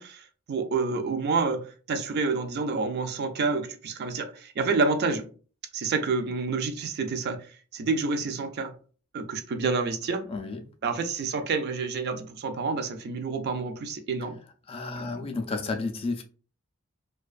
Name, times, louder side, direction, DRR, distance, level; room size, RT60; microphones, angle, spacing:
voice 1, 0.0-5.3 5.7-7.5 7.7-8.7 9.1-10.3 10.8-14.4 15.0-15.3, right 4 dB, 50° right, 0.4 m, -28 dB
voice 2, 10.3-10.6 14.7-16.2, left 3 dB, 25° left, 0.3 m, -31 dB
2.4 x 2.2 x 2.4 m
head